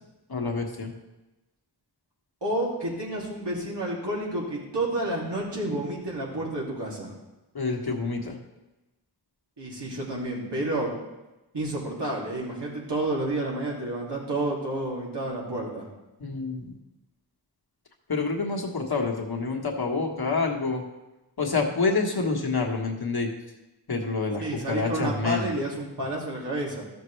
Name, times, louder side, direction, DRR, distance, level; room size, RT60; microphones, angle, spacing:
voice 1, 0.3-0.9 7.5-8.3 16.2-16.8 18.1-20.8 21.4-23.3 23.9-25.5, left 4 dB, 60° left, 1 dB, 1.6 m, -27 dB
voice 2, 2.4-7.2 9.6-11.0 11.5-15.9 24.4-26.8, right 1 dB, 80° right, -5 dB, 2.8 m, -30 dB
13.0 x 6.7 x 3.3 m, 1.0 s
wide cardioid pair, 45°, 41 cm